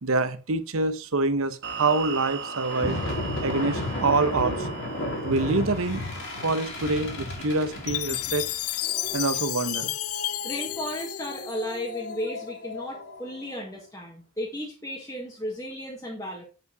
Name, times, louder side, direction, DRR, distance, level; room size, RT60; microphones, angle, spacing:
voice 1, 0.0-3.0 3.4-4.7 5.2-6.0 6.4-8.5 9.1-9.9, right 3 dB, 65° right, 0.9 m, -26 dB
sound 1, 1.6-8.8, right 5 dB, 50° right, 1.4 m, -40 dB
sound 2, 2.6-13.2, left 1 dB, 55° left, 2.4 m, -34 dB
Chime, 7.9-12.1, left 16 dB, 75° left, 0.4 m, -31 dB
voice 2, 10.4-16.4, left 1 dB, 15° left, 1.6 m, -34 dB
8.9 x 5.5 x 3.9 m
head